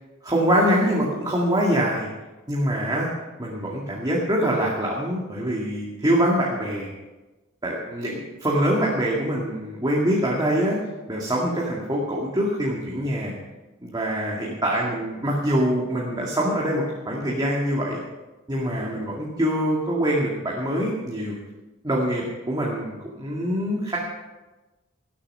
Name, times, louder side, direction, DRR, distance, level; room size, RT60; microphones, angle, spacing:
voice 1, 0.2-2.1 2.5-3.1 3.4-6.9 7.6-10.8 11.1-13.3 13.8-18.0 18.5-21.4 21.8-24.0, equal, 20° right, -4 dB, 2.2 m, -24 dB
18.5 x 8.6 x 5.6 m, 1.1 s
head